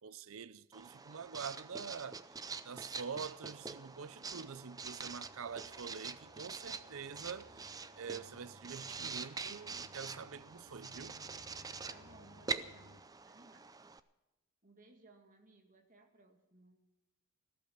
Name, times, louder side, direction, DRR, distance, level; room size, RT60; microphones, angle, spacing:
voice 1, 0.0-2.2 2.6-11.2, right 6 dB, 65° right, 0.6 m, -46 dB
Writing, 0.7-14.0, right 5 dB, 15° right, 0.4 m, -45 dB
sound 1, 2.9-13.0, left 2 dB, 80° left, 1.6 m, -62 dB
voice 2, 11.9-13.7 14.6-16.9, right 2 dB, 35° right, 1.9 m, -63 dB
15.0 x 13.5 x 5.8 m
head